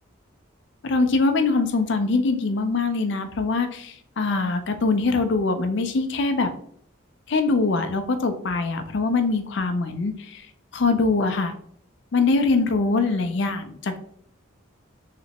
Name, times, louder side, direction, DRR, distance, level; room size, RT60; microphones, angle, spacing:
voice 1, 0.8-6.5 7.3-10.4 10.7-11.5 12.1-14.0, left 3 dB, 60° left, 8 dB, 0.4 m, -23 dB
3.3 x 2.9 x 2.8 m, 0.63 s
head